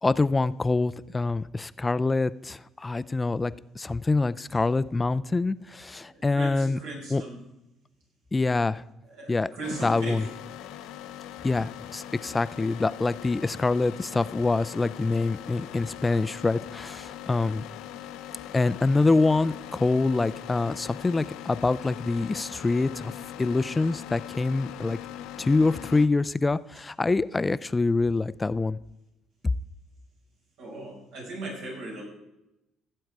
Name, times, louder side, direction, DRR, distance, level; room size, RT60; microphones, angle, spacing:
voice 1, 0.0-6.8 7.1-7.2 8.3-8.8 9.3-9.5 9.8-10.2 11.4-17.6 18.5-25.0 25.4-28.8, left 3 dB, 20° left, 17 dB, 0.4 m, -25 dB
voice 2, 5.7-7.4 9.1-10.3 30.6-32.0, right 2 dB, 90° right, -3 dB, 5.4 m, -38 dB
sound 1, 9.6-26.1, left 11 dB, 85° left, 0.7 m, -41 dB
16.5 x 7.8 x 4.7 m, 0.90 s
supercardioid pair, 85°, 0 cm